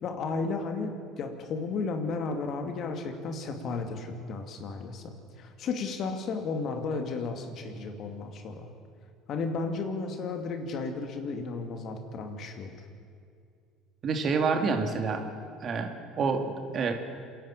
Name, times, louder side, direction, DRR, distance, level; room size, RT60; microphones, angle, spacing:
voice 1, 0.0-8.7 9.3-12.9, left 4 dB, 55° left, 6 dB, 2.5 m, -34 dB
voice 2, 14.0-15.2 15.6-16.9, right 4 dB, 45° right, 5 dB, 2.7 m, -28 dB
27.5 x 11.0 x 9.0 m, 2.3 s
hypercardioid pair, 70°, 0 cm